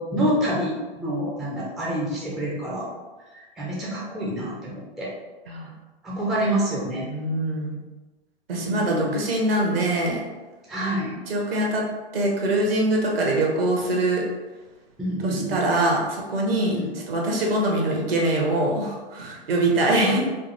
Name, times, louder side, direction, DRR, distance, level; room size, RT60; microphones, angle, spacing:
voice 1, 0.0-2.9 3.3-5.1 6.0-7.1 8.5-9.2 10.7-11.2 15.0-15.6 16.7-16.9 20.0-20.2, right 1 dB, ahead, -6 dB, 0.3 m, -27 dB
voice 2, 7.1-7.8 8.5-10.2 11.3-11.8 12.1-14.2 15.2-20.3, right 1 dB, 70° right, 0 dB, 1.2 m, -23 dB
5.0 x 2.1 x 2.9 m, 1.2 s
hypercardioid pair, 115°, 31 cm